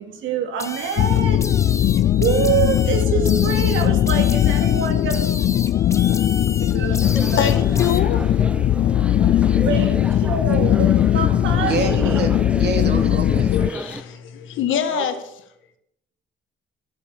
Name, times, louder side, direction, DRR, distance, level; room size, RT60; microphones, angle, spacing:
voice 1, 0.0-1.4 2.2-5.3 6.7-7.0 7.3-7.5 9.6-10.0 10.2-10.9 11.1-12.3 14.9-15.0, right 6 dB, 80° right, 2.2 m, -25 dB
sound 1, 0.6-8.0, left 3 dB, 15° left, 0.9 m, -34 dB
sound 2, 1.0-13.7, left 11 dB, 50° left, 0.4 m, -19 dB
sound 3, 7.0-14.0, right 1 dB, 5° right, 0.6 m, -32 dB
voice 2, 7.4-8.2 13.5-15.1, left 9 dB, 80° left, 1.7 m, -24 dB
voice 3, 11.7-13.6, right 4 dB, 55° right, 2.6 m, -27 dB
13.0 x 7.4 x 7.1 m
cardioid pair, 90°, 20 cm